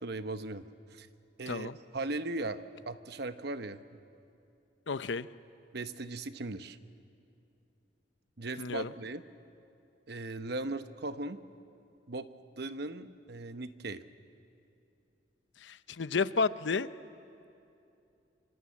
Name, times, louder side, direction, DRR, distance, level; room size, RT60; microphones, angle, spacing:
voice 1, 0.0-1.1 1.4-4.0 5.7-6.8 8.4-9.2 10.1-11.4 12.1-12.3 12.6-14.0, right 2 dB, 60° right, 11 dB, 1.0 m, -38 dB
voice 2, 1.5-1.8 4.9-5.3 8.6-8.9 15.6-16.9, left 4 dB, 80° left, 14 dB, 0.7 m, -31 dB
26.5 x 24.0 x 8.6 m, 2.7 s
head